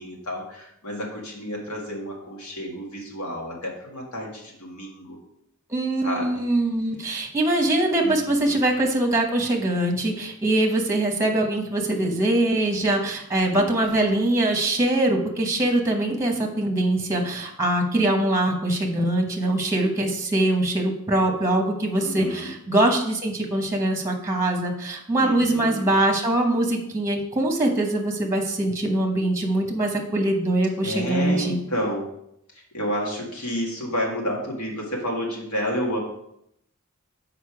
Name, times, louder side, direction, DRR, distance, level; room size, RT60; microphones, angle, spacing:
voice 1, 0.0-5.2 6.0-6.5 8.0-8.6 13.4-13.9 22.0-22.5 25.2-25.9 30.8-32.1 32.5-36.0, equal, 85° left, -1 dB, 1.9 m, -30 dB
voice 2, 5.7-31.6, right 1 dB, 15° right, 2 dB, 0.9 m, -23 dB
6.6 x 5.0 x 4.8 m, 0.77 s
head